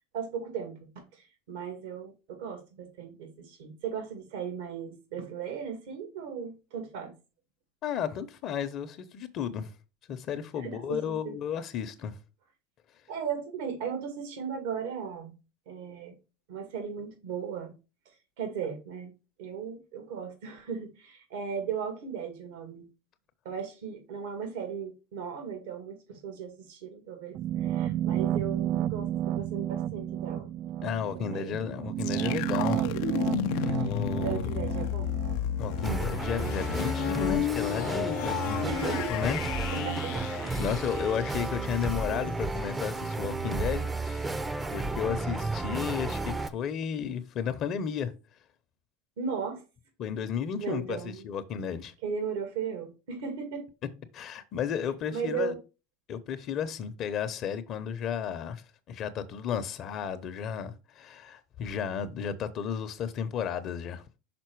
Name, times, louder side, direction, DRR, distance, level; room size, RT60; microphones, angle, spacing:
voice 1, 0.1-7.1 10.6-11.4 13.1-15.4 15.7-16.2 16.5-17.7 18.4-19.1 19.4-22.9 23.4-30.5 31.1-31.6 33.8-33.9 34.2-35.2 38.6-39.2 39.7-40.2 49.2-49.6 50.6-51.3 52.0-53.7 55.1-55.6, right 6 dB, 75° right, 2.1 m, -36 dB
voice 2, 7.8-9.7 10.1-12.2 30.8-32.8 33.6-34.4 35.6-39.4 40.5-44.3 44.7-48.1 50.0-51.9 54.1-55.5 56.1-64.0, left 7 dB, 50° left, 0.8 m, -33 dB
sound 1, 27.3-36.3, right 11 dB, 50° right, 0.3 m, -31 dB
sound 2, 32.0-41.8, left 13 dB, 70° left, 0.5 m, -33 dB
sound 3, 35.8-46.5, right 3 dB, 15° right, 0.6 m, -32 dB
5.9 x 4.2 x 4.6 m
supercardioid pair, 100°, 0 cm